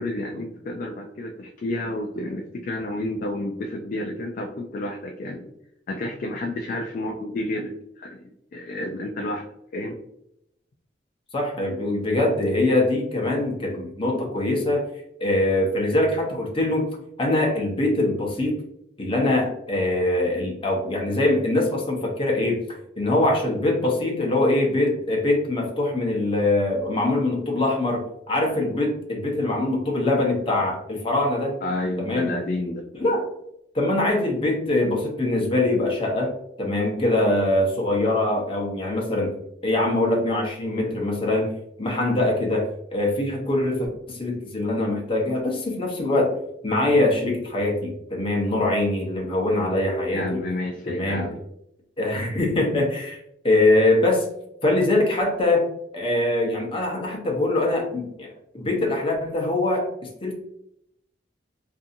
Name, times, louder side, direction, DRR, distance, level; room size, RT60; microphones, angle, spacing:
voice 1, 0.0-5.5 5.9-8.2 8.5-9.5 9.7-10.0 31.6-32.9 50.1-51.4, left 1 dB, 50° left, 2 dB, 0.3 m, -30 dB
voice 2, 11.3-14.8 15.2-16.9 17.2-18.6 19.0-22.6 23.0-31.6 32.0-32.3 33.0-33.3 33.7-36.3 36.6-39.3 39.6-46.3 46.6-50.4 50.8-51.3 52.0-53.2 53.4-54.3 54.6-55.7 55.9-58.3 58.5-60.3, left 2 dB, 30° left, -1 dB, 0.7 m, -23 dB
2.6 x 2.6 x 2.5 m, 0.78 s
head